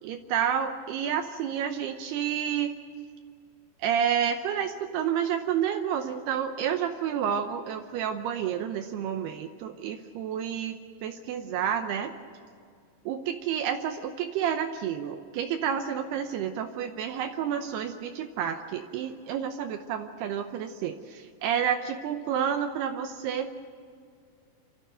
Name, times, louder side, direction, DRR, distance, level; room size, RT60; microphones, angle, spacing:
voice 1, 0.0-2.8 3.8-12.1 13.1-23.5, right 8 dB, 80° right, 6 dB, 2.7 m, -30 dB
27.5 x 13.0 x 9.0 m, 2.2 s
omnidirectional pair, 4.9 m